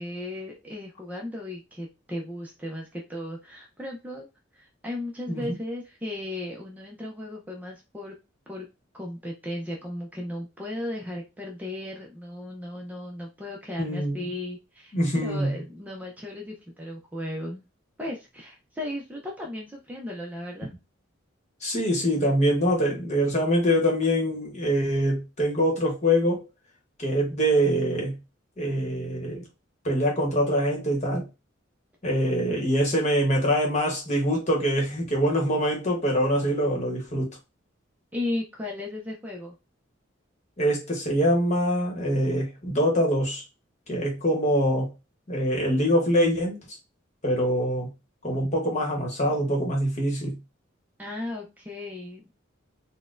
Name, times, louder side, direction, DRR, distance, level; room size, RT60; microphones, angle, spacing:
voice 1, 0.0-4.3 4.5-8.2 8.5-8.7 8.9-17.6 18.0-20.7 38.1-39.5 51.0-52.3, left 1 dB, 10° right, 0.5 m, -36 dB
voice 2, 13.8-14.3 14.9-15.6 21.6-26.5 27.0-28.2 28.6-29.5 29.8-31.2 32.0-37.3 40.6-43.4 43.9-44.9 45.3-46.6 47.2-47.9 48.2-50.4, equal, 35° left, 1.0 m, -24 dB
4.0 x 2.1 x 2.4 m
head